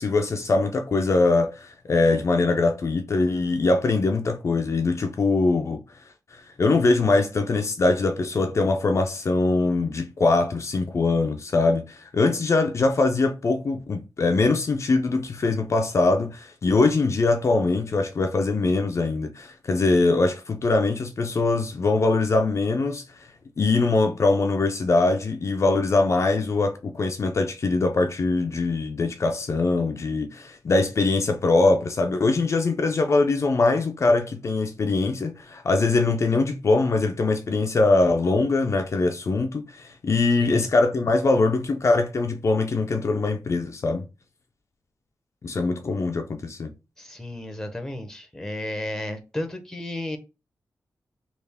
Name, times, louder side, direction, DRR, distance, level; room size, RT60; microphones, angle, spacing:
voice 1, 0.0-5.8 6.3-23.0 23.6-44.1 45.4-46.7, left 3 dB, 45° left, 0.4 m, -22 dB
voice 2, 47.0-50.2, left 1 dB, 5° left, 0.7 m, -33 dB
3.4 x 2.4 x 3.4 m
wide cardioid pair, 105°, 7 cm